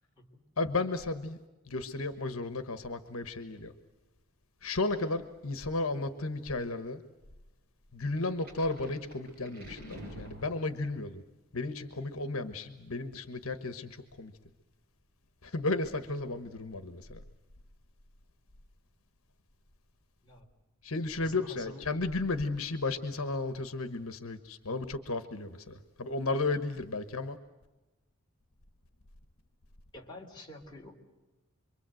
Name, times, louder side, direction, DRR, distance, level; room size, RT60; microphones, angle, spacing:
voice 1, 0.6-1.4 1.7-3.7 4.6-7.0 7.9-11.2 11.5-14.3 15.4-17.2 20.8-27.4, left 3 dB, 75° left, 10 dB, 1.3 m, -34 dB
sound 1, 8.2-11.0, equal, 40° right, 7.2 m, -48 dB
voice 2, 21.2-21.9 29.9-30.9, left 1 dB, 20° left, 0 dB, 3.5 m, -48 dB
27.0 x 23.5 x 7.8 m, 1.1 s
head